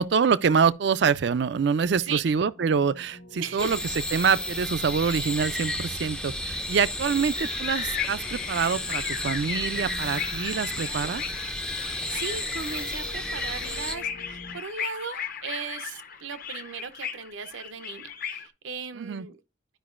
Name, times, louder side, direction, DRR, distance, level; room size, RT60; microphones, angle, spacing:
voice 1, 0.0-3.8 4.1-11.2 19.0-19.3, right 6 dB, 60° right, 0.4 m, -25 dB
sound 1, 2.5-14.6, equal, 75° left, 1.4 m, -47 dB
voice 2, 3.4-3.8 7.1-7.2 11.8-19.4, right 6 dB, 85° right, 0.8 m, -37 dB
sound 2, 3.6-14.0, left 1 dB, 5° left, 0.4 m, -33 dB
sound 3, 7.4-18.5, left 8 dB, 45° left, 0.7 m, -36 dB
11.0 x 5.2 x 2.4 m
head